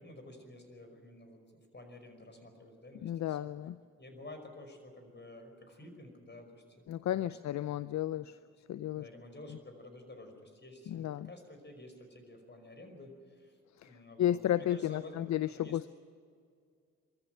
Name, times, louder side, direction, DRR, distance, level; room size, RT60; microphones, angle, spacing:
voice 1, 0.0-1.4 1.7-3.5 4.0-6.8 7.1-7.8 8.9-13.6 13.8-15.3 15.6-15.8, left 2 dB, 35° left, 6 dB, 5.4 m, -51 dB
voice 2, 3.0-3.8 6.9-8.4 8.7-9.0 10.9-11.3 13.8-15.9, left 12 dB, 65° left, 15 dB, 0.5 m, -33 dB
23.0 x 14.0 x 9.2 m, 2.2 s
supercardioid pair, 50°, 30 cm